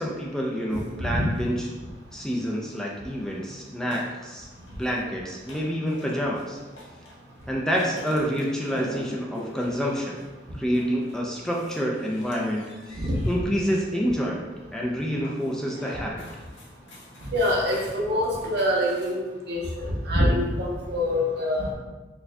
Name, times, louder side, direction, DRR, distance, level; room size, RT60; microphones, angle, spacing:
voice 1, 0.0-1.6 2.1-6.6 7.5-10.2 10.6-16.2, equal, 5° left, -2 dB, 0.3 m, -28 dB
sound 1, 0.7-19.1, equal, 75° left, 0.8 m, -45 dB
voice 2, 17.3-21.7, left 1 dB, 65° right, -2 dB, 0.7 m, -25 dB
4.5 x 2.6 x 2.2 m, 1.2 s
head